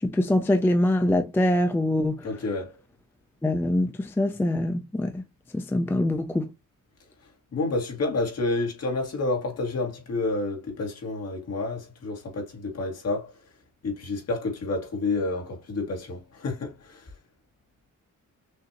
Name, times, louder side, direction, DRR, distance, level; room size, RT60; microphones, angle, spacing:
voice 1, 0.0-2.3 3.4-5.2 5.5-6.5, left 1 dB, 5° left, 0.4 m, -24 dB
voice 2, 2.2-2.7 7.5-13.3 13.8-17.1, left 2 dB, 50° left, 2.0 m, -29 dB
6.4 x 2.7 x 2.9 m
wide cardioid pair, 175°, 33 cm